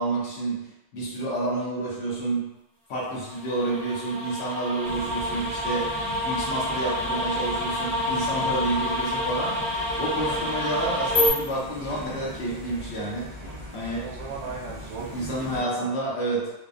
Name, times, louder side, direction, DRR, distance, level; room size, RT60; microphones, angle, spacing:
voice 1, 0.0-2.5 2.9-6.0 6.2-13.3 13.7-14.1 15.1-16.5, right 2 dB, 70° left, -5 dB, 1.0 m, -29 dB
sound 1, 3.2-11.3, left 1 dB, 30° left, 0.5 m, -28 dB
sound 2, 4.8-15.6, equal, 45° right, 0.6 m, -40 dB
voice 2, 14.0-15.9, right 4 dB, 80° right, -2 dB, 0.9 m, -37 dB
2.7 x 2.2 x 2.4 m, 0.93 s
omnidirectional pair, 1.2 m